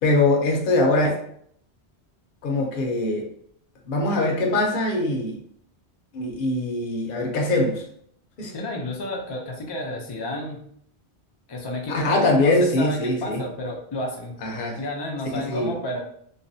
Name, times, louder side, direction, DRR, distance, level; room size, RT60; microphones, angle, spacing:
voice 1, 0.0-1.1 2.4-3.3 3.9-5.4 6.1-7.8 8.4-8.5 11.9-13.4 14.4-14.8 15.5-15.7, left 2 dB, 60° left, 0 dB, 0.8 m, -22 dB
voice 2, 8.5-10.6 11.5-14.4 14.8-16.0, left 1 dB, 40° left, -1 dB, 0.3 m, -31 dB
3.2 x 2.1 x 2.6 m, 0.66 s
omnidirectional pair, 1.1 m